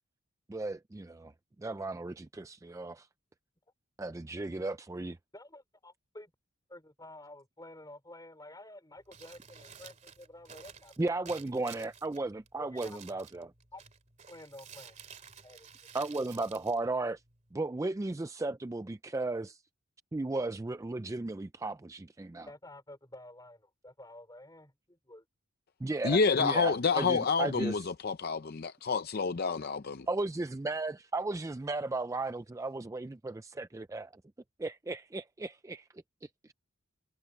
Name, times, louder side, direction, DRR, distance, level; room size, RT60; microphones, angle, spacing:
voice 1, 0.5-1.3 1.6-3.1 4.0-5.2 11.0-13.5 15.9-17.2 17.5-19.6 20.1-22.5 25.8-27.9 30.1-34.2 34.6-35.9 36.2-36.5, right 2 dB, 15° right, 0.3 m, -35 dB
voice 2, 5.3-6.3 6.7-10.9 12.5-13.0 13.7-13.8 14.3-15.0 15.2-15.7 16.2-16.3 22.5-25.2, left 1 dB, 20° left, 5.0 m, -51 dB
Crumpling crinkling, 9.0-17.5, right 7 dB, 35° right, 2.5 m, -53 dB
voice 3, 26.0-30.1, left 5 dB, 45° left, 0.5 m, -28 dB
head